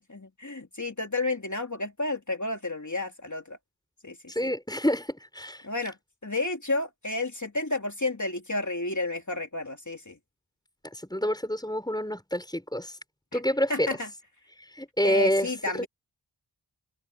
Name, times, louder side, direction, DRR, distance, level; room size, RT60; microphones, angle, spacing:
voice 1, 0.1-3.6 4.0-4.5 5.6-6.0 6.2-10.2 13.3-13.4 13.7-14.1 15.0-15.9, left 2 dB, 40° left, 2.8 m, -31 dB
voice 2, 4.3-5.7 10.9-13.0 13.3-13.9 14.7-15.8, equal, 10° left, 6.1 m, -28 dB
wide cardioid pair, 45°, 46 cm